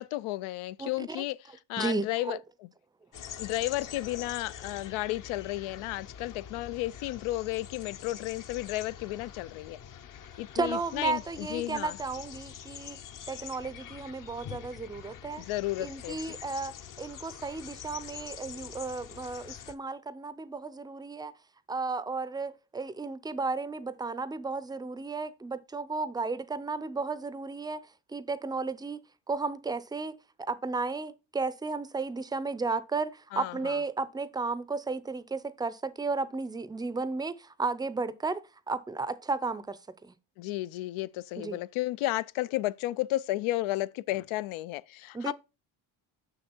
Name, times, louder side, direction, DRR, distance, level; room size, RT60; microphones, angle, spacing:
voice 1, 0.0-1.4 1.7-2.4 3.4-9.8 10.4-12.0 15.4-16.4 33.3-33.8 40.4-45.3, left 17 dB, 80° left, 0.6 m, -33 dB
voice 2, 0.8-1.2 1.8-2.4 10.5-13.0 13.3-15.4 15.8-21.3 21.7-27.8 28.1-29.0 29.3-38.4 38.7-40.1 41.4-41.6 45.1-45.3, right 4 dB, 10° right, 0.5 m, -34 dB
sound 1, 3.1-19.7, left 9 dB, 40° left, 0.7 m, -45 dB
6.4 x 6.3 x 4.4 m
cardioid pair, 100°, 48 cm